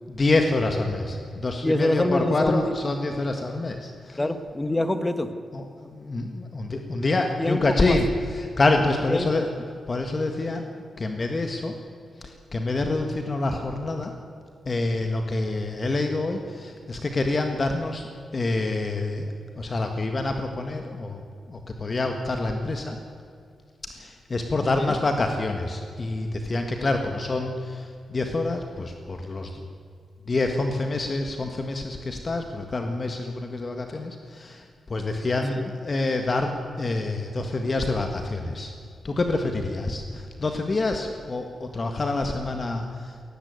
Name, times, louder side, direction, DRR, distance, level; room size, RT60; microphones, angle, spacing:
voice 1, 0.1-4.2 5.5-9.5 9.9-10.7 11.0-11.8 12.2-14.1 14.6-21.2 21.5-23.0 24.0-29.6 30.3-38.7 39.0-43.1, left 2 dB, 35° left, 5 dB, 1.6 m, -27 dB
voice 2, 1.6-2.7 4.2-5.3 7.2-8.0 9.1-9.3 24.8-24.9 26.8-26.9 35.5-35.7, left 1 dB, 15° left, 10 dB, 1.4 m, -25 dB
17.5 x 15.5 x 9.5 m, 2.3 s
wide cardioid pair, 120°, 0 cm